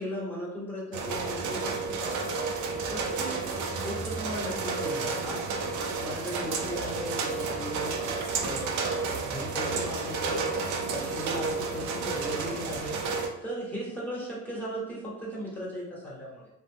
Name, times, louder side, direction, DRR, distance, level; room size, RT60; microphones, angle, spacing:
voice 1, 0.0-2.3 2.9-5.6 6.0-8.8 9.2-10.6 10.9-13.1 13.4-16.5, equal, 5° left, -5 dB, 1.3 m, -37 dB
sound 1, 0.9-13.3, right 4 dB, 70° right, 0.5 m, -31 dB
2.4 x 2.1 x 3.3 m, 0.87 s
supercardioid pair, 70°, 30 cm